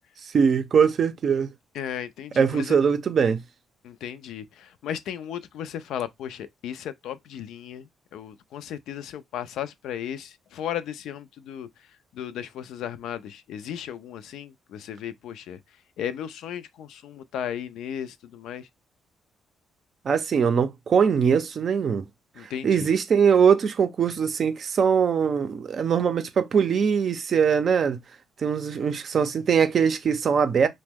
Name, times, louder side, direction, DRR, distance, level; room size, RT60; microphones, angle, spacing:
voice 1, 0.2-1.5 2.4-3.4 20.0-22.1 22.4-28.0 28.4-30.7, right 6 dB, 50° right, 0.5 m, -22 dB
voice 2, 1.7-2.8 3.8-11.7 12.1-15.6 16.0-18.7 22.4-22.9, left 9 dB, 80° left, 0.3 m, -35 dB
2.9 x 2.1 x 3.3 m
cardioid pair, 90°, 0 cm